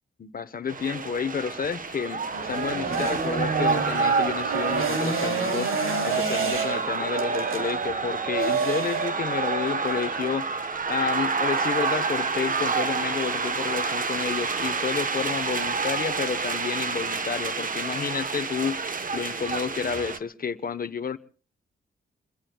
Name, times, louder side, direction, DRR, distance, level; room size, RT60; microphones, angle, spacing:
voice 1, 0.2-18.8 19.1-21.2, left 6 dB, 45° left, 1.0 m, -30 dB
sound 1, 0.7-20.2, right 4 dB, 40° right, 1.1 m, -29 dB
sound 2, 2.3-10.4, right 4 dB, 75° right, 3.0 m, -29 dB
26.5 x 21.5 x 2.3 m
cardioid pair, 85°, 21 cm